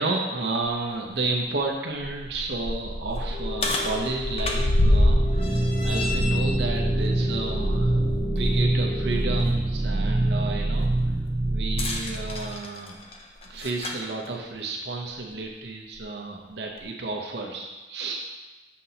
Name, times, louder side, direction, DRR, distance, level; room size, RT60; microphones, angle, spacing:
voice 1, 0.0-10.9 11.5-13.0 13.5-18.2, right 3 dB, 65° right, 0 dB, 0.6 m, -31 dB
sound 1, 0.6-0.7 1.2-1.3 1.9-8.6 9.0-9.2 11.6-14.1 15.0-15.1 16.0-16.1, left 1 dB, 30° left, 0.6 m, -27 dB
sound 2, 3.3-9.4, left 4 dB, 90° left, 1.1 m, -36 dB
sound 3, 4.8-12.6, right 2 dB, 15° right, 0.4 m, -25 dB
6.4 x 5.7 x 2.8 m, 1.2 s
head